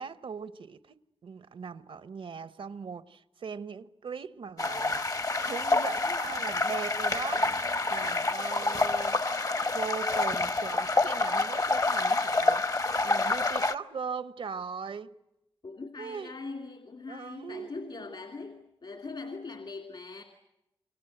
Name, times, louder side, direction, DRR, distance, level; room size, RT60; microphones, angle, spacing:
voice 1, 0.0-5.1 5.4-7.5 7.9-15.2 16.0-16.4 17.1-18.2, right 5 dB, 75° right, 0.9 m, -40 dB
sound 1, 4.6-13.7, left 3 dB, 40° left, 0.9 m, -28 dB
voice 2, 15.6-20.2, left 3 dB, 60° left, 2.3 m, -41 dB
28.0 x 23.5 x 7.9 m
cardioid pair, 50°, 9 cm